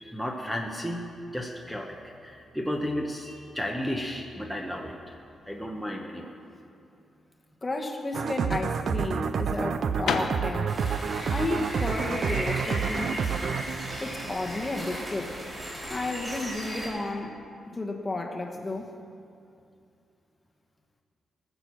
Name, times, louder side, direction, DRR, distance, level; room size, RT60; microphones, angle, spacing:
voice 1, 0.0-5.1 5.5-6.3, equal, ahead, 1 dB, 0.9 m, -33 dB
voice 2, 7.6-10.8 11.3-13.4 14.0-15.4 15.9-18.9, left 2 dB, 20° left, 2 dB, 1.2 m, -32 dB
sound 1, 8.1-14.9, right 6 dB, 60° right, 0.4 m, -29 dB
sound 2, 10.0-13.8, left 6 dB, 80° left, 0.8 m, -36 dB
sound 3, 10.7-16.9, equal, 20° right, 4.0 m, -36 dB
19.0 x 6.9 x 6.1 m, 2.6 s
wide cardioid pair, 130°, 0 cm